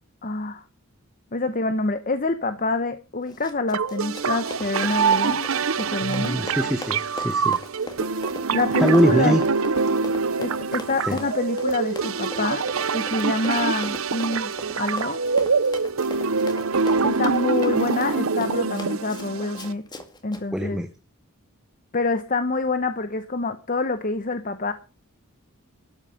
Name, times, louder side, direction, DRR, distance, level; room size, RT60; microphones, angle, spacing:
voice 1, 0.2-0.6 1.3-5.5 5.8-6.4 8.5-9.4 10.4-15.2 17.0-19.8 20.2-20.8 21.9-24.7, left 3 dB, 40° left, 0.9 m, -26 dB
Run, 3.3-20.4, left 1 dB, 20° left, 2.1 m, -40 dB
sound 1, 3.7-19.7, right 5 dB, 75° right, 0.8 m, -25 dB
voice 2, 6.0-7.6 8.8-9.4 11.0-11.2 20.5-20.9, equal, 5° right, 0.9 m, -23 dB
13.0 x 8.7 x 7.0 m
head